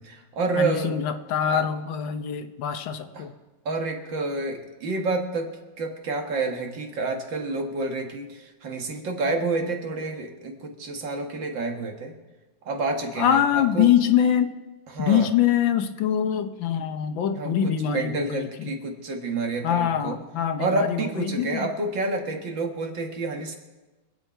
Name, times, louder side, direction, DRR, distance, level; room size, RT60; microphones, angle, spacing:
voice 1, 0.0-0.9 1.4-1.6 3.1-3.3 3.7-5.5 5.8-12.1 12.7-13.9 14.9-15.3 17.3-20.2 20.6-23.6, right 3 dB, 75° right, 3 dB, 2.4 m, -29 dB
voice 2, 0.6-3.3 13.2-14.5 15.0-18.7 19.6-21.7, left 9 dB, 85° left, 7 dB, 1.7 m, -24 dB
25.0 x 8.4 x 4.5 m, 1.2 s
omnidirectional pair, 2.0 m